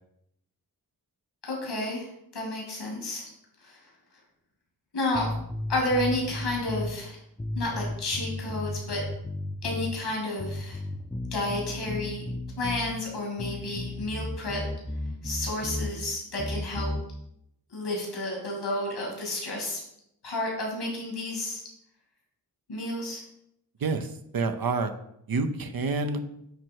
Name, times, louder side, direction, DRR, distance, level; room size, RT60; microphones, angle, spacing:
voice 1, 1.4-2.1 2.3-3.3 3.6-3.8 4.9-5.3 5.7-7.2 7.5-9.0 9.6-10.8 11.3-12.2 12.6-14.6 15.2-16.9 17.7-19.8 20.2-21.6 22.7-23.2, left 2 dB, 85° left, -1 dB, 2.7 m, -31 dB
sound 1, 5.1-6.9 7.4-10.0 10.4-13.0 13.4-15.9 16.4-17.0, left 1 dB, 10° left, 0.7 m, -34 dB
voice 2, 23.8-24.9 25.3-26.2, right 4 dB, 60° right, 8 dB, 0.8 m, -28 dB
9.0 x 3.2 x 4.6 m, 0.77 s
cardioid pair, 50°, 39 cm